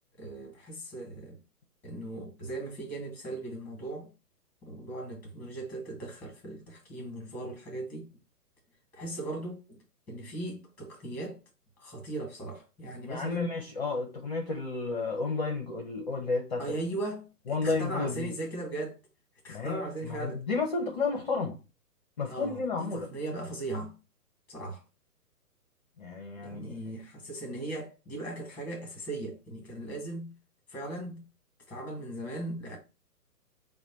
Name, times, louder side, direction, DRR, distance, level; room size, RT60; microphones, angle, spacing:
voice 1, 0.2-1.4 1.8-4.1 4.6-8.1 8.9-9.8 10.1-11.4 11.8-13.5 16.6-19.0 19.4-20.4 22.3-23.9 24.5-24.8 26.4-30.3 30.7-31.2 31.7-32.8, right 2 dB, 5° left, 1.1 m, -38 dB
voice 2, 13.1-16.6 17.5-18.3 19.5-21.6 22.2-23.1 26.0-26.8, left 4 dB, 30° left, 0.6 m, -32 dB
4.9 x 2.2 x 4.3 m
figure-of-eight pair, 130°, 48 cm